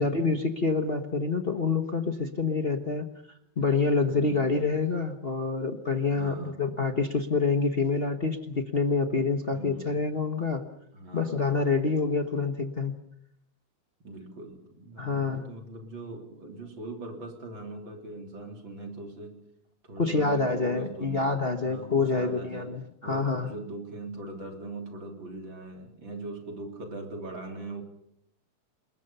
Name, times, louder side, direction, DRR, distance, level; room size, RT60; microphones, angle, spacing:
voice 1, 0.0-3.1 3.6-10.6 11.1-12.9 15.0-15.4 20.0-23.5, left 4 dB, 50° left, 0.7 m, -27 dB
voice 2, 4.1-4.4 6.1-6.6 9.5-9.9 10.9-11.5 14.0-19.4 19.8-22.7 23.0-27.8, right 2 dB, 40° right, 3.8 m, -41 dB
28.5 x 21.0 x 5.6 m
omnidirectional pair, 3.4 m